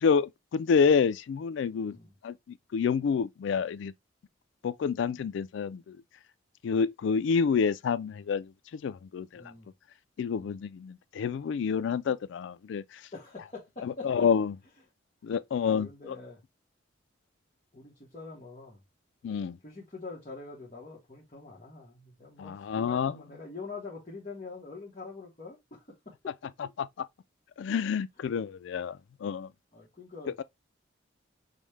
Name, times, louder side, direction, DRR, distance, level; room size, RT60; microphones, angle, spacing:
voice 1, 0.0-2.0 2.2-2.3 2.7-3.9 4.6-6.0 6.6-9.4 10.2-12.8 14.0-14.5 15.2-16.2 19.2-19.6 22.4-23.2 26.8-26.9 27.6-29.5, left 6 dB, 70° left, 0.3 m, -28 dB
voice 2, 1.8-2.1 9.3-9.7 10.3-10.6 13.1-14.3 15.6-16.4 17.7-18.8 19.6-26.3 29.7-30.4, left 3 dB, 35° left, 1.1 m, -44 dB
5.2 x 2.1 x 3.1 m
head